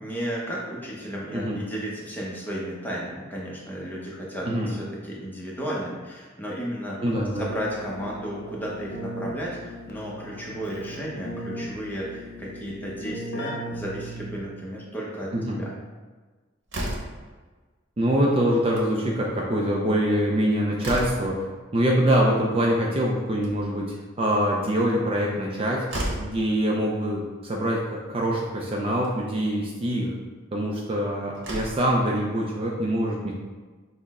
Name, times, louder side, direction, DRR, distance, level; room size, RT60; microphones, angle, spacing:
voice 1, 0.0-7.0 7.4-15.3 15.6-15.7, equal, 10° left, -5 dB, 0.7 m, -33 dB
voice 2, 7.0-7.5 15.3-15.6 18.0-21.4 21.7-25.8 26.2-30.1 30.5-33.3, equal, 30° right, -2 dB, 0.4 m, -24 dB
Keyboard (musical), 7.1-14.7, equal, 55° left, 0.6 m, -38 dB
Slam, 16.7-17.3 18.5-18.9 19.2-19.3 19.6-19.7 20.3-21.4 23.1-23.8 25.4-25.5 25.9-26.4 27.5-27.6 28.0-28.1 28.9-29.2 30.9-31.0 31.3-31.9, right 1 dB, 60° right, 0.9 m, -33 dB
6.1 x 2.1 x 3.5 m, 1.4 s
head